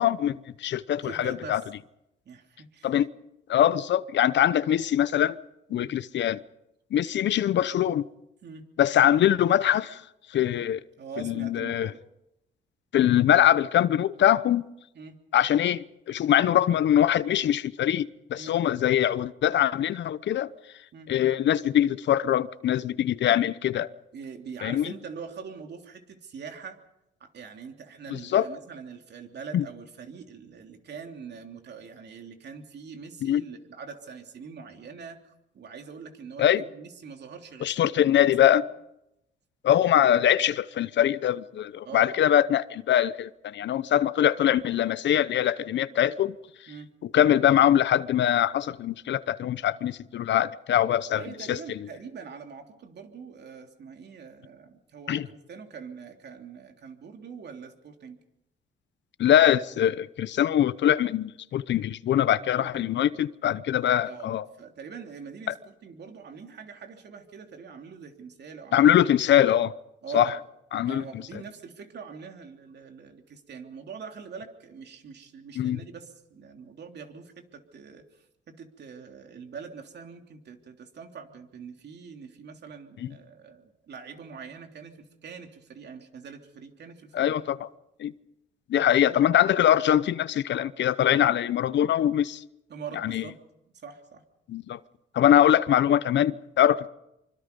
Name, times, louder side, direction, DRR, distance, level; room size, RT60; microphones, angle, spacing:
voice 1, 0.0-1.6 2.8-3.1 3.5-5.4 5.7-6.4 6.9-8.0 8.8-10.0 10.3-10.8 11.2-11.9 12.9-14.6 15.3-20.5 21.1-23.9 24.6-24.9 28.1-28.4 29.5-29.6 33.2-33.4 36.4-36.6 37.6-38.6 39.6-46.3 47.1-51.2 51.5-51.6 55.1-55.3 59.2-64.5 68.7-69.7 70.1-70.3 70.7-71.0 75.6-75.8 83.0-83.1 87.1-87.7 88.0-88.1 88.7-92.4 93.0-93.2 94.5-94.8 95.1-96.9, left 11 dB, 65° left, 0.8 m, -23 dB
voice 2, 1.0-1.6 2.2-3.0 5.7-5.9 8.4-8.7 11.0-12.0 14.9-15.2 18.3-18.6 20.9-21.1 24.1-26.8 27.2-37.9 38.2-38.6 39.8-39.9 41.8-42.2 46.7-46.9 51.1-58.2 62.5-62.9 64.0-69.0 70.0-70.4 70.9-87.5 88.7-89.3 92.7-93.4 93.7-94.2 95.4-95.5, right 6 dB, 60° right, 3.2 m, -43 dB
25.0 x 25.0 x 5.4 m
cardioid pair, 90°, 20 cm